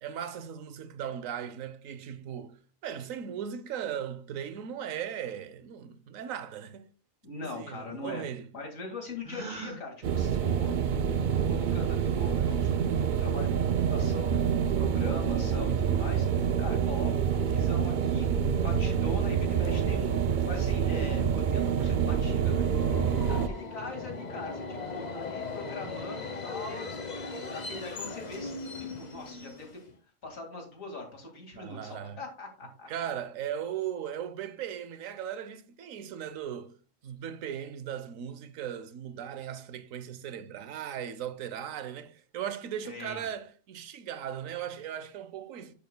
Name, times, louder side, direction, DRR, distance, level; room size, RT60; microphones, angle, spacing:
voice 1, 0.0-6.9 7.4-8.5 31.6-32.2 32.9-36.8 37.0-45.7, right 9 dB, 80° right, 1.1 m, -38 dB
voice 2, 7.2-8.2 8.5-10.7 11.3-22.7 23.3-27.1 27.5-28.5 28.8-29.8 30.2-32.9 42.8-43.2, left 3 dB, 80° left, 2.5 m, -41 dB
Gasp, 9.2-9.8, right 3 dB, 35° right, 2.5 m, -39 dB
sound 1, 10.0-23.5, right 7 dB, 60° right, 0.5 m, -27 dB
Subway metro underground, 22.2-29.9, left 3 dB, 35° left, 1.0 m, -39 dB
10.5 x 6.8 x 2.2 m
omnidirectional pair, 1.4 m